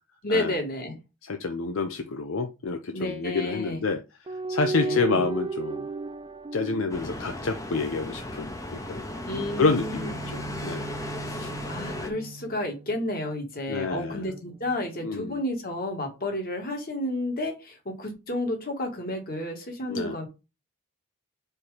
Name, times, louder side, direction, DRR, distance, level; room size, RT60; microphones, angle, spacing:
voice 1, 0.2-1.0 2.9-3.8 4.7-5.3 9.2-10.1 11.3-20.3, left 1 dB, 40° left, 1.7 m, -31 dB
voice 2, 1.2-4.0 4.5-5.8 6.5-9.0 9.6-10.9 11.4-11.5 13.7-14.3 15.0-15.4 19.9-20.1, left 4 dB, 60° left, 0.6 m, -28 dB
sound 1, 4.3-7.9 9.4-13.1 13.9-15.1, right 3 dB, 20° right, 0.4 m, -35 dB
sound 2, 6.9-12.1, left 1 dB, 15° left, 0.8 m, -36 dB
4.4 x 4.3 x 4.9 m
head